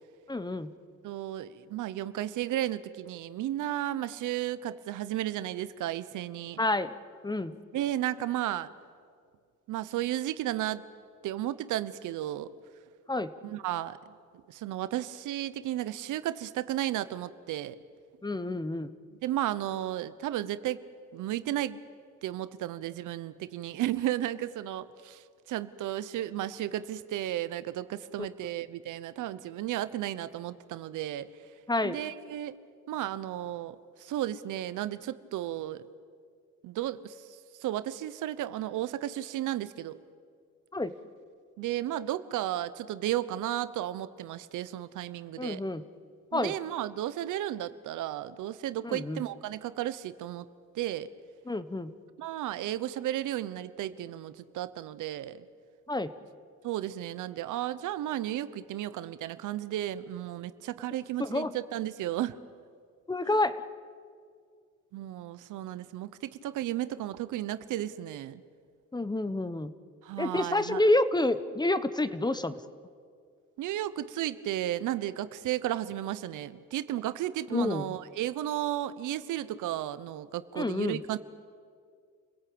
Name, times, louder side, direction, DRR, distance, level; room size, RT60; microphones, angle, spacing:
voice 1, 0.3-0.7 6.6-6.9 7.2-7.6 13.1-13.3 18.2-18.9 31.7-32.0 40.7-40.9 45.4-45.8 46.3-46.5 48.8-49.2 51.5-51.9 55.9-56.1 61.2-61.5 63.1-63.5 68.9-69.7 70.2-72.6 77.5-77.9 80.5-81.0, left 2 dB, 15° left, 13 dB, 1.1 m, -28 dB
voice 2, 1.0-6.6 7.7-8.7 9.7-10.8 11.2-12.5 13.4-14.1 14.5-17.8 19.1-21.8 22.2-31.3 31.8-32.6 32.9-35.8 36.6-40.0 41.6-45.6 46.3-50.5 50.7-51.1 52.2-55.5 56.6-62.4 63.3-63.4 64.9-68.4 70.0-70.8 73.6-81.2, right 13 dB, 85° right, 14 dB, 0.9 m, -34 dB
29.0 x 17.0 x 8.7 m, 2.1 s
cardioid pair, 90°, 30 cm